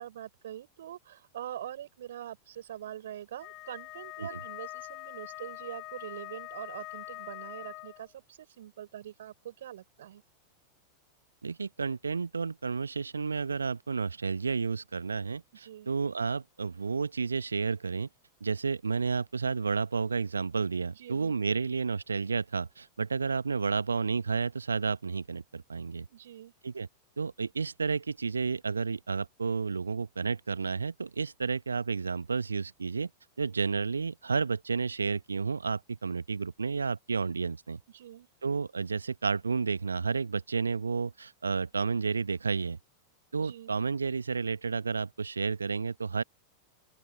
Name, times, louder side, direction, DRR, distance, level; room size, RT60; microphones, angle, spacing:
voice 1, 0.0-10.2 15.5-15.9 20.9-21.6 26.1-26.5 37.9-38.3 43.4-43.8, right 11 dB, 60° right, 7.2 m, -44 dB
Wind instrument woodwind instrument, 3.4-8.1, left 21 dB, 40° left, 7.1 m, -43 dB
voice 2, 11.4-15.4 15.9-18.1 18.4-26.1 26.6-26.9 27.2-33.1 33.4-37.8 38.4-42.8 43.3-46.2, right 5 dB, 75° right, 1.5 m, -31 dB
open air
figure-of-eight pair, 90°, 0 cm